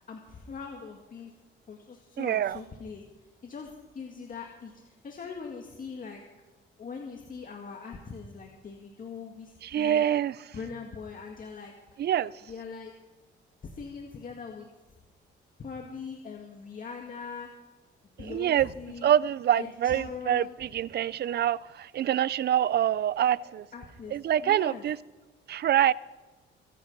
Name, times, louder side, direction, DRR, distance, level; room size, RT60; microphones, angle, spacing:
voice 1, 0.1-1.3 1.7-6.2 6.8-10.1 10.5-12.0 12.5-12.9 13.6-14.7 15.6-17.5 18.2-19.1 19.5-20.6 23.7-24.8, left 5 dB, 45° left, 1.9 m, -42 dB
voice 2, 2.2-2.6 9.7-10.4 12.0-12.3 18.2-18.7 19.0-23.7 24.1-25.0 25.5-25.9, right 11 dB, 55° right, 0.5 m, -25 dB
24.0 x 8.5 x 5.4 m
cardioid pair, 90°, 20 cm